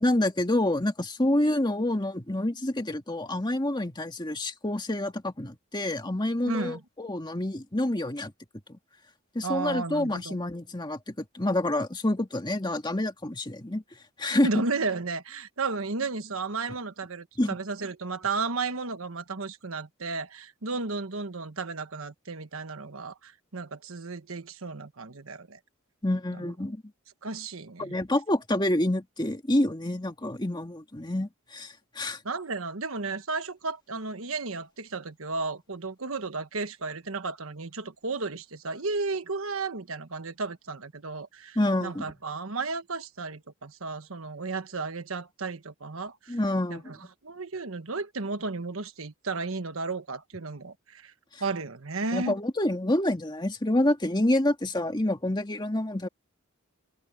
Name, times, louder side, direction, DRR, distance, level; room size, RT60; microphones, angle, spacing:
voice 1, 0.0-8.3 9.4-13.8 14.2-14.6 17.4-17.6 26.0-26.8 27.8-32.2 41.6-42.1 46.3-46.8 51.3-51.4 52.1-56.1, left 1 dB, 20° left, 1.9 m, -27 dB
voice 2, 6.5-6.8 9.4-10.4 14.4-25.6 26.4-26.5 27.2-28.0 32.2-46.4 46.7-51.1 51.4-52.4, right 3 dB, 70° right, 1.3 m, -33 dB
head